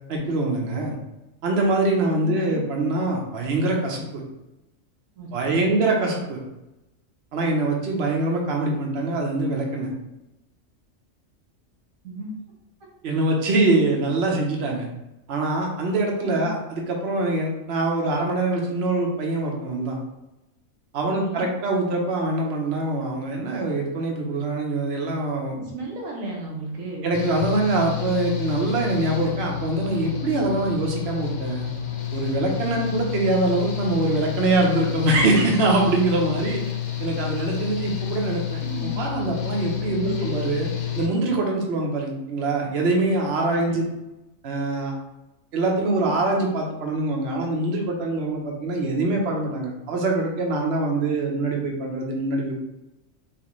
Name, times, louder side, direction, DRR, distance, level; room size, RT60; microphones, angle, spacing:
voice 1, 0.1-1.0 1.4-4.2 5.3-6.4 7.3-9.9 13.0-14.9 15.3-20.0 20.9-25.6 27.0-31.7 32.1-36.6 37.0-40.7 41.0-43.8 44.4-44.9 45.5-52.6, right 2 dB, 60° right, 0 dB, 1.0 m, -24 dB
voice 2, 2.2-2.6 5.2-5.9 12.0-12.3 13.0-13.2 16.2-16.5 21.0-21.5 25.6-27.1 38.6-39.0 39.9-40.4 43.3-43.8, right 1 dB, 85° right, -2 dB, 1.4 m, -34 dB
Engine / Mechanical fan, 27.1-41.1, left 10 dB, 55° left, 0.5 m, -30 dB
4.2 x 3.2 x 3.1 m, 0.95 s
omnidirectional pair, 1.3 m